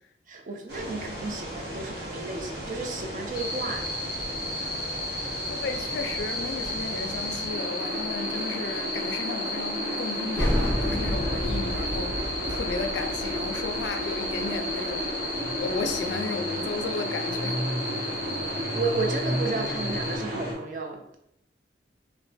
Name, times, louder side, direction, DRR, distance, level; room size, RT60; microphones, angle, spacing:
voice 1, 0.3-3.8 18.4-21.2, right 3 dB, 45° right, 0.4 m, -33 dB
sound 1, 0.7-20.5, equal, 70° right, 1.2 m, -34 dB
sound 2, 3.3-20.2, left 1 dB, 20° left, 0.7 m, -34 dB
voice 2, 5.5-15.1 15.6-17.6, left 4 dB, 80° left, 0.3 m, -34 dB
sound 3, 10.4-15.7, equal, 10° right, 0.8 m, -31 dB
3.1 x 2.1 x 2.6 m
head